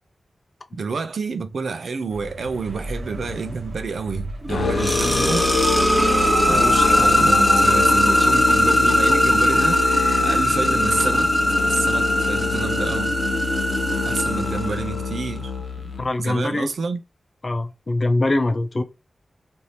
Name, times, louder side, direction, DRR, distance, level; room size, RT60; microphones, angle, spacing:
voice 1, 0.7-5.5 6.4-9.9 10.2-11.3 11.7-13.1 14.0-15.5 15.8-15.9 16.2-17.0, right 4 dB, 85° right, 0.4 m, -29 dB
sound 1, 2.1-7.8, right 1 dB, 70° right, 1.0 m, -36 dB
sound 2, 4.4-15.2, equal, ahead, 0.7 m, -20 dB
Musical instrument, 4.5-16.1, left 5 dB, 85° left, 0.6 m, -26 dB
voice 2, 16.0-16.7 17.4-18.8, left 2 dB, 45° left, 0.6 m, -22 dB
2.7 x 2.7 x 3.2 m
wide cardioid pair, 90°, 0 cm